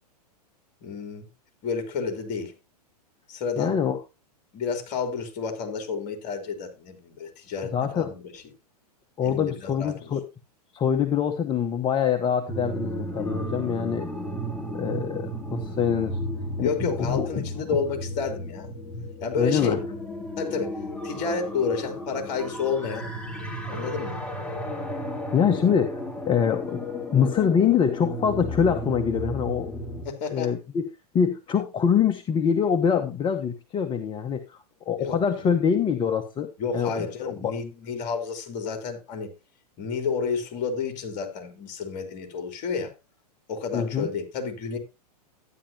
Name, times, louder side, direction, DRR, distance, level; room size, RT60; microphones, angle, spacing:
voice 1, 0.8-1.3 1.6-2.5 3.3-3.8 4.5-8.4 9.2-10.1 16.6-18.7 19.2-19.8 20.4-20.8 21.0-23.1 23.7-24.2 30.1-30.5 35.0-35.5 36.6-39.3 39.8-42.9 43.5-44.8, left 5 dB, 40° left, 3.3 m, -30 dB
voice 2, 3.6-4.0 7.7-8.1 9.2-10.3 10.7-14.1 14.7-16.2 16.6-17.4 18.9-19.0 19.4-19.8 25.3-26.8 27.1-29.7 30.3-30.9 31.1-37.5 43.7-44.1, left 7 dB, 25° left, 1.0 m, -24 dB
sound 1, 12.5-30.1, equal, 5° left, 2.9 m, -34 dB
12.5 x 10.0 x 2.8 m
hypercardioid pair, 115°, 21 cm